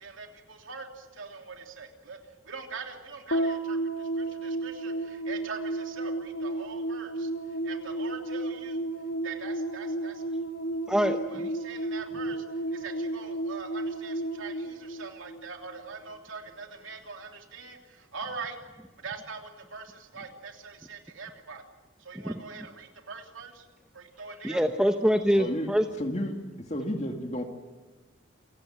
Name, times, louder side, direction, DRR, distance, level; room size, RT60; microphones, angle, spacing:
voice 1, 0.0-2.2 2.4-8.8 9.2-10.2 11.3-12.4 12.7-18.6 19.0-21.6 22.0-23.7 23.9-24.6, right 5 dB, 85° right, 3 dB, 3.1 m, -43 dB
sound 1, 3.3-15.8, right 1 dB, 90° left, 2.0 m, -33 dB
voice 2, 10.9-11.4 22.2-22.3 24.4-25.8, equal, 5° right, 5 dB, 0.9 m, -24 dB
voice 3, 25.4-25.7 26.0-26.4 26.7-27.4, equal, 35° left, 3 dB, 2.3 m, -31 dB
28.0 x 16.5 x 9.0 m, 1.3 s
head